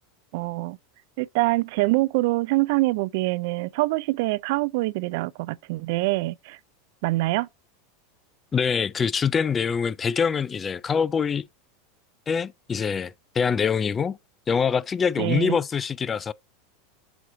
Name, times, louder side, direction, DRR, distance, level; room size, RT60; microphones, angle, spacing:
voice 1, 0.3-0.8 1.2-6.6 7.0-7.5 15.2-15.6, right 21 dB, 65° right, 0.3 m, -25 dB
voice 2, 8.5-11.5 12.3-14.2 14.5-16.3, left 6 dB, 25° left, 0.3 m, -24 dB
7.8 x 3.0 x 5.0 m
hypercardioid pair, 100°, 0 cm